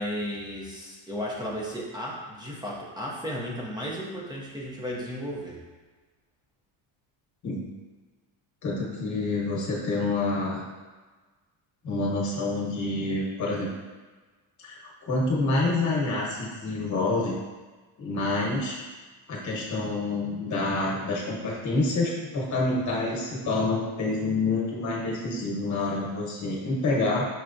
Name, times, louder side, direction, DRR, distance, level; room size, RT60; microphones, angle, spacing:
voice 1, 0.0-5.6, equal, 10° right, -4 dB, 0.5 m, -34 dB
voice 2, 8.6-10.6 11.8-13.7 14.6-17.4 18.0-18.8 19.3-27.3, left 2 dB, 35° left, -3 dB, 1.1 m, -27 dB
5.8 x 3.2 x 2.6 m, 1.3 s
cardioid pair, 150°, 50 cm